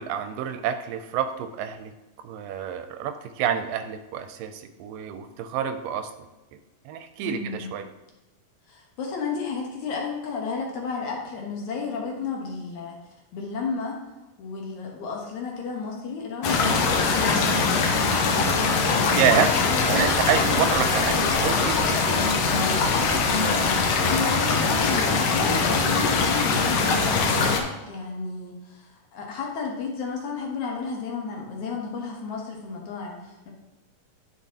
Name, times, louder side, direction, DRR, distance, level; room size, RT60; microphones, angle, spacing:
voice 1, 0.0-1.9 2.2-6.1 6.9-7.9 19.2-19.5 19.8-22.0, right 8 dB, 80° right, 8 dB, 2.1 m, -28 dB
voice 2, 7.2-7.7 8.7-13.0 13.3-14.0 14.4-18.5 19.3-20.7 22.5-22.9 23.4-33.5, left 5 dB, 65° left, -1 dB, 2.4 m, -32 dB
sound 1, 16.4-27.6, left 4 dB, 90° left, 1.4 m, -22 dB
9.9 x 6.2 x 2.8 m, 1.1 s
omnidirectional pair, 4.0 m